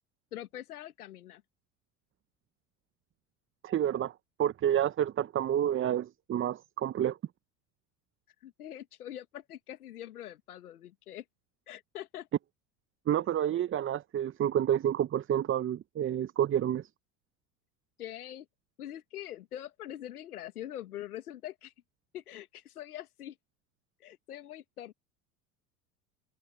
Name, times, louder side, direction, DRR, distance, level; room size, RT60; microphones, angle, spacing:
voice 1, 0.3-1.4 8.4-11.2 11.7-12.3 18.0-18.4 18.8-21.7 22.1-23.3 24.0-24.9, left 12 dB, 85° left, 1.8 m, -43 dB
voice 2, 3.6-7.2 13.1-16.9, right 10 dB, 30° right, 0.8 m, -29 dB
hypercardioid pair, 80°, 44 cm